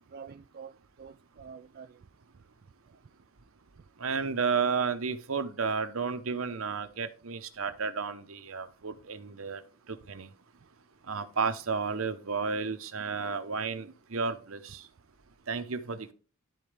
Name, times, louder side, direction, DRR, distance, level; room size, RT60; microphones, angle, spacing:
voice 1, 0.0-2.1 2.8-3.0, right 6 dB, 45° right, 0.3 m, -48 dB
voice 2, 4.0-9.6 9.9-10.3 11.1-14.9 15.5-16.1, right 5 dB, 65° right, 0.9 m, -32 dB
12.0 x 4.1 x 3.4 m
head